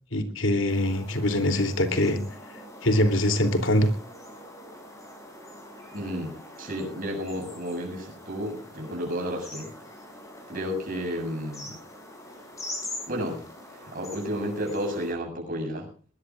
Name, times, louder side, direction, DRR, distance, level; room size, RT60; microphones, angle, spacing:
voice 1, 0.1-2.2 2.8-3.9, left 1 dB, 75° left, 7 dB, 3.0 m, -23 dB
sound 1, 0.7-15.1, left 1 dB, 15° left, 7.0 m, -43 dB
voice 2, 5.9-9.7 10.5-11.8 13.1-15.9, equal, 45° right, 0 dB, 7.4 m, -32 dB
21.5 x 21.0 x 2.5 m, 0.36 s
head